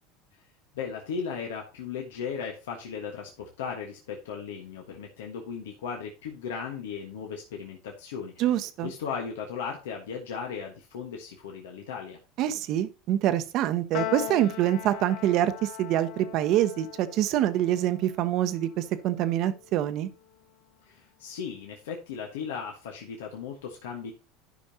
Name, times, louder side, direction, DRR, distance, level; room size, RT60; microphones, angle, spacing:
voice 1, 0.7-8.4 8.8-12.2 20.8-24.1, left 6 dB, 85° left, 1.4 m, -36 dB
voice 2, 8.4-8.9 12.4-20.1, right 12 dB, 55° right, 0.8 m, -25 dB
Piano, 13.9-20.5, left 13 dB, 60° left, 0.6 m, -40 dB
12.5 x 5.2 x 2.8 m
supercardioid pair, 105°, 0 cm